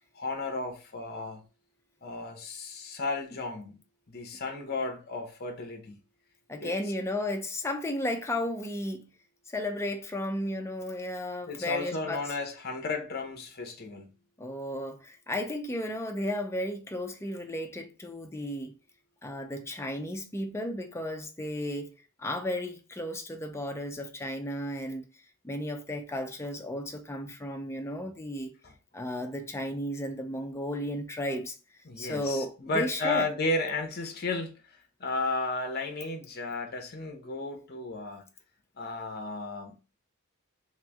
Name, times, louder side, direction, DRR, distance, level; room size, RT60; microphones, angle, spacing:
voice 1, 0.1-1.4 2.0-3.8 4.1-6.0 6.6-6.8 11.5-14.1 28.6-28.7 31.9-34.6 35.0-38.2 38.8-39.8, left 3 dB, 50° left, 0.8 m, -33 dB
voice 2, 6.5-9.1 9.5-12.2 14.4-18.7 19.2-21.9 22.2-25.1 25.4-28.5 28.9-31.5 32.0-33.3, left 1 dB, 15° left, 0.5 m, -34 dB
3.1 x 3.0 x 3.5 m
head